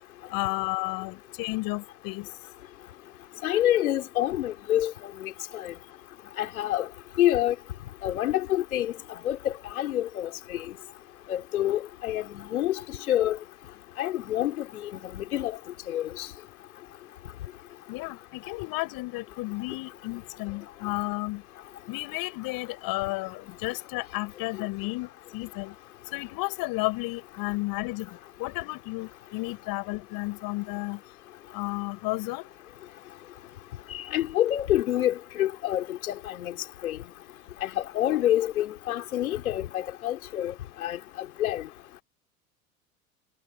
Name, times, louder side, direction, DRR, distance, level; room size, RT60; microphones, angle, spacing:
voice 1, 0.3-2.3 17.9-21.4 21.9-25.7 26.1-31.0 31.5-32.5, left 23 dB, 55° left, 7.8 m, -32 dB
voice 2, 3.4-5.7 6.4-6.9 7.2-7.5 8.0-8.9 9.2-10.8 11.3-13.4 14.0-15.6 15.9-16.3 33.9-36.5 36.8-37.0 37.6-40.5 40.8-41.0 41.4-41.6, left 12 dB, 75° left, 5.0 m, -27 dB
hypercardioid pair, 85°, 43 cm